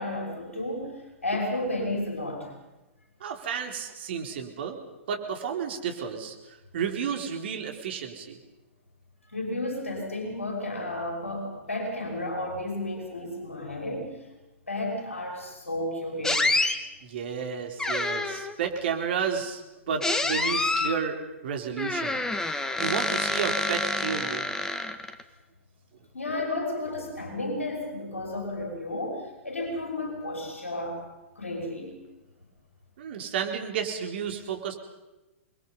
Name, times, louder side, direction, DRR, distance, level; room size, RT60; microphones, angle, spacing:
voice 1, 0.0-2.5 9.3-14.3 14.7-16.4 26.1-31.0 31.4-32.0, left 1 dB, 80° left, 1 dB, 5.9 m, -32 dB
voice 2, 3.2-4.8 5.1-8.4 17.0-19.6 19.9-22.2 22.8-24.4 33.0-34.7, right 7 dB, 55° right, 3 dB, 4.1 m, -32 dB
sound 1, 16.2-16.8 17.8-18.5 20.0-21.0 21.8-25.2, left 2 dB, 10° left, 1.6 m, -27 dB
28.5 x 22.0 x 5.6 m, 1.0 s
figure-of-eight pair, 105°, 7 cm